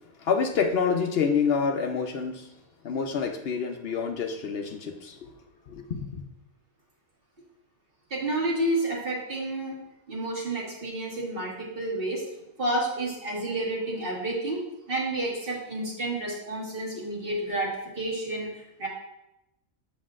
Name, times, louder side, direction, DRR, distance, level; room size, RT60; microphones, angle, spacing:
voice 1, 0.2-2.5 2.8-5.3 5.7-6.2, left 6 dB, 60° left, 4 dB, 0.8 m, -27 dB
voice 2, 8.1-9.8 10.1-12.3 12.6-14.6 14.9-18.9, right 1 dB, 45° right, -4 dB, 1.9 m, -30 dB
7.5 x 7.0 x 2.5 m, 0.88 s
omnidirectional pair, 1.3 m